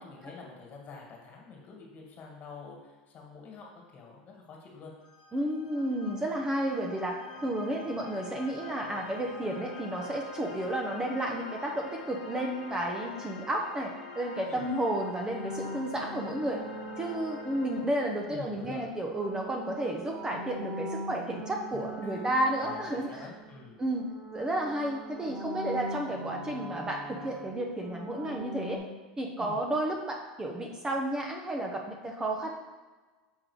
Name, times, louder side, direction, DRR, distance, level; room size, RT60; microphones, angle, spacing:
voice 1, 0.0-4.9 14.5-14.7 18.3-18.9 21.7-22.3 22.6-23.8 29.4-29.6, left 4 dB, 40° left, -1 dB, 1.9 m, -47 dB
sound 1, 5.0-17.9, left 4 dB, 90° left, 1.1 m, -45 dB
voice 2, 5.3-16.6 17.0-23.2 23.8-24.0 24.3-28.8 29.2-32.5, right 1 dB, 15° right, 0 dB, 0.8 m, -32 dB
sound 2, 15.3-18.2 18.9-23.7 23.9-28.8, right 1 dB, 55° right, 1.9 m, -41 dB
6.3 x 3.7 x 4.9 m, 1.3 s
hypercardioid pair, 95°, 4 cm